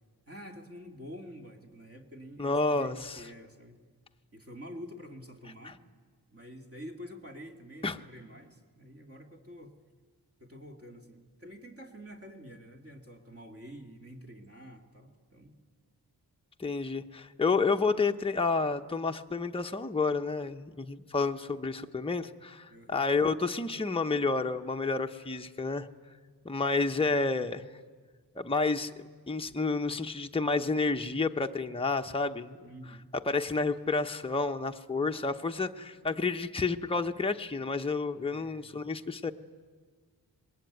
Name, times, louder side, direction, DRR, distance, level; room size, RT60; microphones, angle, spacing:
voice 1, 0.3-3.8 4.3-5.8 6.3-9.7 10.4-15.5 22.7-23.1 32.6-33.1 38.3-38.7, equal, 35° right, 2 dB, 2.4 m, -48 dB
voice 2, 2.4-3.3 5.6-5.7 7.8-8.0 16.6-25.9 26.4-27.6 28.4-28.9 29.3-32.6 33.3-39.3, left 3 dB, 15° left, 5 dB, 0.8 m, -30 dB
24.5 x 21.0 x 9.4 m, 1.5 s
wide cardioid pair, 95°, 41 cm